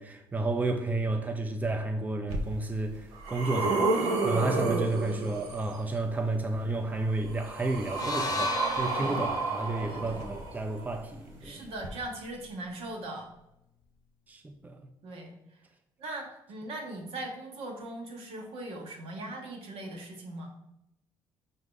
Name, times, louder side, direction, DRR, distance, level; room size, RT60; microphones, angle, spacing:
voice 1, 0.0-3.9 4.2-11.7 14.3-14.8, right 2 dB, 15° right, 0.5 m, -31 dB
sound 1, 2.3-2.4 2.9-5.7 6.9-10.8 11.8-11.9, right 3 dB, 90° right, 0.6 m, -31 dB
voice 2, 4.6-5.2 8.9-9.2 9.8-10.2 11.4-13.3 15.0-15.3 16.0-20.5, right 1 dB, 70° right, 1.0 m, -40 dB
sound 2, 7.9-12.1, left 3 dB, 35° left, 0.5 m, -38 dB
4.7 x 2.7 x 3.7 m
supercardioid pair, 60°, 10 cm